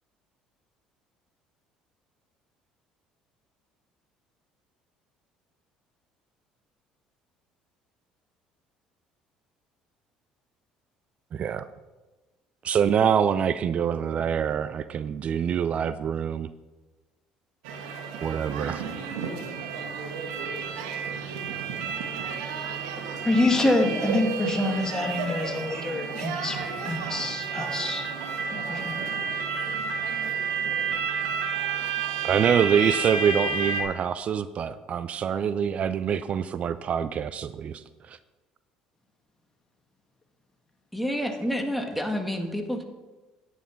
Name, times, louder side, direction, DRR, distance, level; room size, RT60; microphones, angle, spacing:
voice 1, 11.3-11.7 12.6-16.5 18.2-18.8 32.2-38.2, right 8 dB, 50° right, 14 dB, 0.5 m, -25 dB
sound 1, 17.7-33.8, right 5 dB, 85° right, 1.4 m, -31 dB
voice 2, 22.3-22.9 23.2-28.0 28.5-29.0, left 2 dB, 20° left, 2 dB, 2.4 m, -27 dB
voice 3, 40.9-42.8, equal, ahead, 4 dB, 1.8 m, -29 dB
10.0 x 8.2 x 5.7 m, 1.2 s
supercardioid pair, 80°, 3 cm